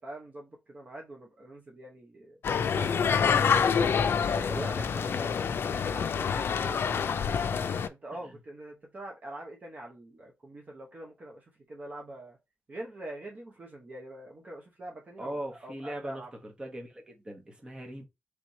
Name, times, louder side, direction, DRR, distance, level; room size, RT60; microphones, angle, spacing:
voice 1, 0.0-2.4 2.7-3.5 4.3-4.7 5.7-7.4 7.9-12.4 12.7-15.3 15.6-16.3, right 1 dB, 45° right, 0.9 m, -44 dB
sound 1, 2.4-7.9, left 6 dB, 75° left, 0.4 m, -27 dB
voice 2, 4.5-5.4 8.2-8.4 15.2-18.0, right 1 dB, 25° right, 1.2 m, -40 dB
3.3 x 3.1 x 4.0 m
wide cardioid pair, 110°, 4 cm